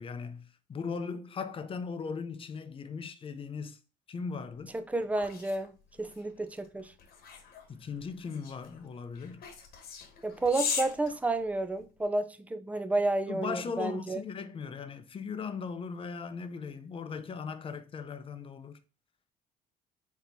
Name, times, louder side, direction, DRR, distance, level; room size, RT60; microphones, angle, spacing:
voice 1, 0.0-3.8 4.1-4.7 7.7-9.4 13.2-18.8, left 5 dB, 30° left, 0.6 m, -38 dB
sound 1, 4.5-12.0, left 6 dB, 65° left, 1.2 m, -40 dB
voice 2, 4.7-5.7 6.0-6.9 10.2-14.2, right 2 dB, 10° right, 0.5 m, -31 dB
4.3 x 4.1 x 2.7 m
cardioid pair, 110°, 17 cm